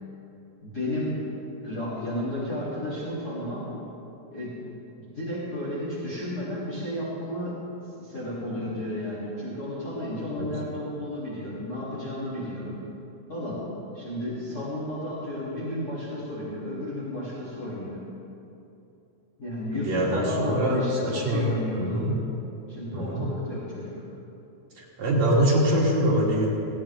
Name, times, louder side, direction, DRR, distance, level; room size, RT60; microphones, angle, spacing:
voice 1, 0.6-1.2 1.6-3.7 4.3-4.5 5.1-7.6 8.0-12.8 13.3-13.6 13.9-18.0 19.4-22.0 22.7-23.9, left 1 dB, 30° left, -10 dB, 3.8 m, -32 dB
voice 2, 19.7-21.5 21.8-22.2 22.9-23.3 24.8-26.5, right 1 dB, 65° right, -4 dB, 3.3 m, -24 dB
18.0 x 17.0 x 3.7 m, 2.8 s
omnidirectional pair, 3.4 m